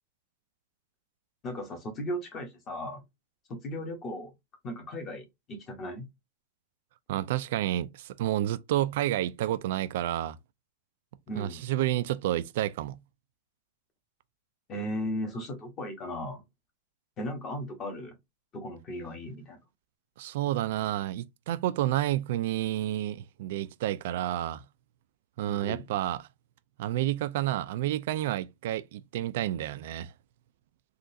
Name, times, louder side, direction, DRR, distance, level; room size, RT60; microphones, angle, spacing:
voice 1, 1.4-3.0 3.5-4.3 4.6-6.1 11.3-11.6 14.7-16.4 17.2-18.2 18.5-19.6 25.4-25.8, equal, 25° left, 1.0 m, -36 dB
voice 2, 7.1-10.4 11.3-13.0 20.2-24.6 25.4-26.2 26.8-30.1, right 13 dB, 60° right, 0.3 m, -30 dB
3.8 x 2.4 x 2.6 m
supercardioid pair, 155°, 0 cm